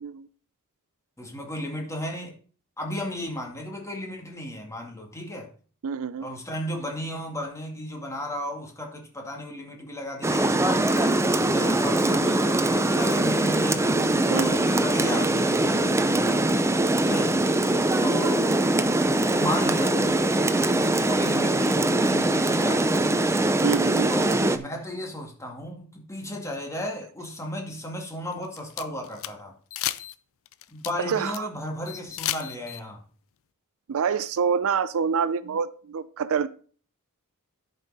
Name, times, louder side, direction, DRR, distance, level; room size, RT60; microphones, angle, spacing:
voice 1, 1.2-2.3 2.8-5.5 6.2-11.2 11.5-13.8 14.3-16.4 17.1-17.4 18.0-18.5 19.3-23.3 24.1-29.5 30.7-33.0, left 1 dB, 15° left, 0 dB, 2.1 m, -34 dB
voice 2, 5.8-6.3 14.3-14.6 23.6-24.1 31.1-31.5 33.9-36.5, right 6 dB, 65° right, 16 dB, 0.5 m, -26 dB
Rain, 10.2-24.6, right 1 dB, 10° right, 0.6 m, -22 dB
sound 1, 28.3-29.3 29.7-30.2 30.5-31.4 31.9-32.8, left 13 dB, 65° left, 0.5 m, -32 dB
11.0 x 5.6 x 4.1 m, 0.43 s
head